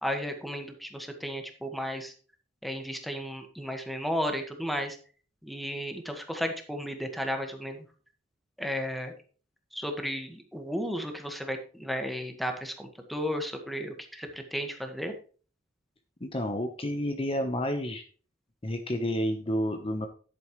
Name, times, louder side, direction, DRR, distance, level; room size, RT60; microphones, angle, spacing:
voice 1, 0.0-2.1 2.6-5.0 5.4-7.8 8.6-9.1 9.7-15.2, equal, ahead, 4 dB, 1.6 m, -34 dB
voice 2, 16.2-18.0 18.6-20.1, equal, 30° left, 6 dB, 1.0 m, -30 dB
10.5 x 8.8 x 3.2 m, 0.39 s
head